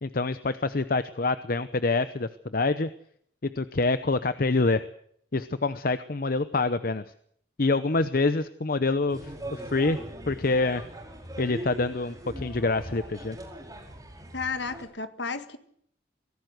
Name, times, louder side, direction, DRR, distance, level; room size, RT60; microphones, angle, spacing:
voice 1, 0.0-2.9 3.6-4.8 5.3-7.0 7.6-10.0 10.3-10.8 11.4-13.4, left 3 dB, 50° left, 0.8 m, -26 dB
sound 1, 9.1-14.8, right 1 dB, 20° right, 5.0 m, -41 dB
voice 2, 14.3-15.6, left 4 dB, 65° left, 1.8 m, -33 dB
23.5 x 16.5 x 8.0 m
head